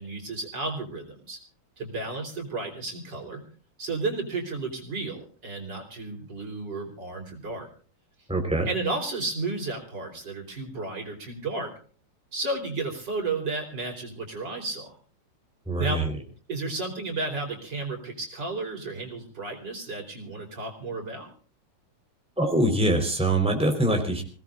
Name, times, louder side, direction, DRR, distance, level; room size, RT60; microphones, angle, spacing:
voice 1, 0.0-1.4 1.8-3.4 3.8-7.7 8.7-11.7 12.3-14.9 15.8-16.0 16.5-21.3, right 3 dB, 55° right, 3 dB, 4.6 m, -33 dB
voice 2, 8.3-8.7 15.7-16.1 22.4-24.2, right 1 dB, 5° right, 3 dB, 4.0 m, -24 dB
27.0 x 18.5 x 2.5 m, 0.42 s
omnidirectional pair, 2.2 m